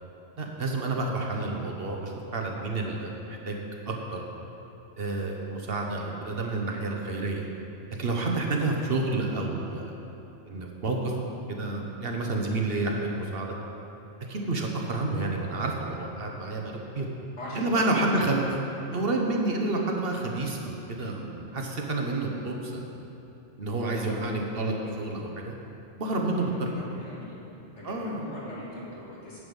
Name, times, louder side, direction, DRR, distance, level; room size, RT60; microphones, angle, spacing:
voice 1, 0.4-3.6 3.9-4.2 5.0-7.5 8.0-10.0 10.5-13.5 14.3-17.1 17.5-18.4 18.9-23.0 23.6-25.5 26.0-27.0 27.8-28.2, right 2 dB, 60° right, 1 dB, 1.2 m, -29 dB
voice 2, 17.4-18.2 26.4-27.4 27.8-29.4, left 1 dB, 80° left, -6 dB, 2.5 m, -40 dB
9.8 x 7.9 x 5.4 m, 2.9 s
omnidirectional pair, 1.2 m